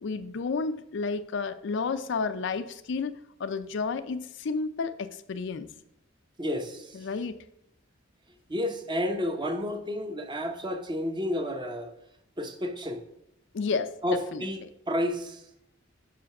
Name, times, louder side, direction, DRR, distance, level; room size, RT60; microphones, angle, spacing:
voice 1, 0.0-5.7 6.9-7.4 13.5-14.4, left 4 dB, 65° left, 12 dB, 0.4 m, -31 dB
voice 2, 6.4-7.0 8.5-11.9 12.4-13.0 14.0-15.4, left 1 dB, 25° right, 6 dB, 0.9 m, -31 dB
6.6 x 5.0 x 5.9 m, 0.78 s
head